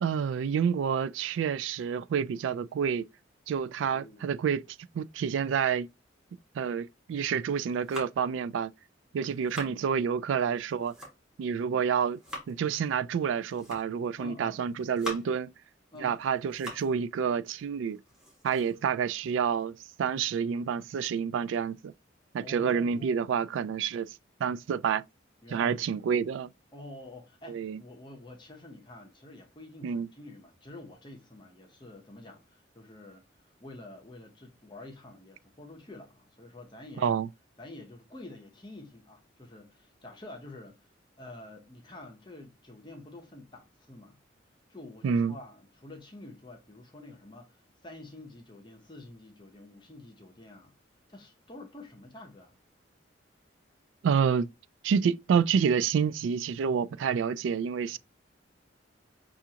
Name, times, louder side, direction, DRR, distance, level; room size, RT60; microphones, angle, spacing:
voice 1, 0.0-3.1 3.5-4.6 4.9-5.9 6.5-8.7 9.1-10.9 11.4-12.2 12.5-15.5 16.0-18.0 18.4-21.9 22.3-24.1 24.4-25.0 25.5-26.5 27.5-27.8 29.8-30.1 37.0-37.3 45.0-45.3 54.0-54.5 54.8-58.0, right 7 dB, 85° right, 0.3 m, -28 dB
voice 2, 3.8-4.3 9.2-9.9 11.6-11.8 14.2-14.6 15.9-16.2 22.4-23.4 25.4-25.9 26.7-37.2 37.6-40.9 41.2-44.2 44.7-50.7 51.1-52.6, left 2 dB, 25° left, 0.7 m, -48 dB
sound 1, 7.6-8.4 9.1-9.8 10.6-11.4 11.9-12.6 13.4-14.1 14.6-15.5 16.0-17.0 17.3-17.4 17.9-19.6, left 1 dB, 5° right, 1.2 m, -44 dB
5.9 x 2.4 x 2.8 m
head